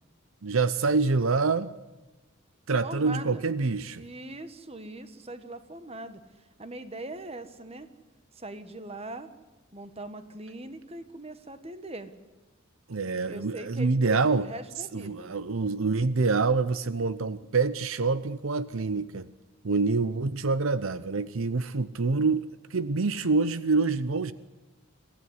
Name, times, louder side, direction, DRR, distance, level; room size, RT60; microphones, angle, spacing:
voice 1, 0.4-1.7 2.7-4.0 12.9-14.5 14.9-19.2 19.6-22.5 22.7-24.3, right 4 dB, 75° right, 15 dB, 0.7 m, -26 dB
voice 2, 2.8-3.4 3.9-6.2 6.6-7.9 8.3-9.3 9.7-12.1 13.2-15.3, right 2 dB, 30° right, 10 dB, 1.5 m, -41 dB
23.5 x 15.5 x 9.8 m, 1.1 s
head